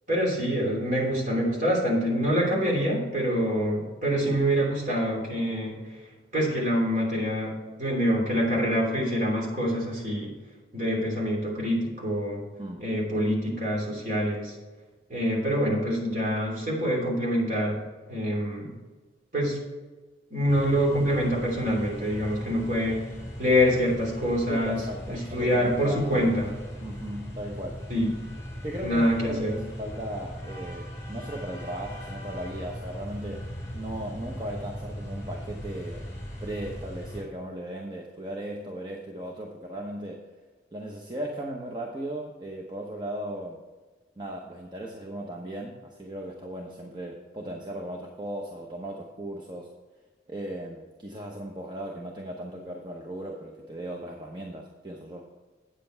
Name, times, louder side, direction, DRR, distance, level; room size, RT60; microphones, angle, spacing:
voice 1, 0.1-5.7 6.3-10.3 10.7-12.4 12.8-14.5 15.1-17.8 18.1-18.7 19.3-19.6 20.3-23.1 23.4-26.5 27.9-28.1 28.8-29.6, equal, 45° right, -2 dB, 3.0 m, -26 dB
sound 1, 20.5-37.2, equal, 15° left, 2.9 m, -38 dB
voice 2, 24.5-26.3 26.8-27.8 28.6-33.4 33.7-36.1 36.4-40.2 40.7-43.6 44.2-49.7 50.3-55.3, right 1 dB, 25° right, 0 dB, 0.8 m, -37 dB
8.8 x 7.6 x 4.4 m, 1.3 s
head